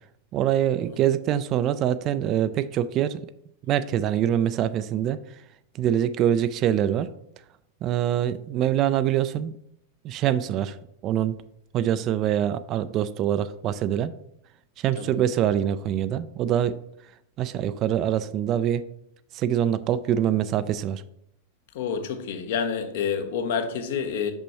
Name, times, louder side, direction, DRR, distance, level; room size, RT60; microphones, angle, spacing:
voice 1, 0.3-3.2 3.7-5.2 5.7-7.1 7.8-9.5 10.0-10.8 11.0-11.4 11.7-14.1 14.8-16.8 17.4-18.8 19.3-21.0, right 10 dB, 35° right, 0.3 m, -24 dB
voice 2, 21.7-24.3, left 6 dB, 55° left, 0.7 m, -28 dB
6.1 x 5.5 x 3.0 m
figure-of-eight pair, 90°, 0 cm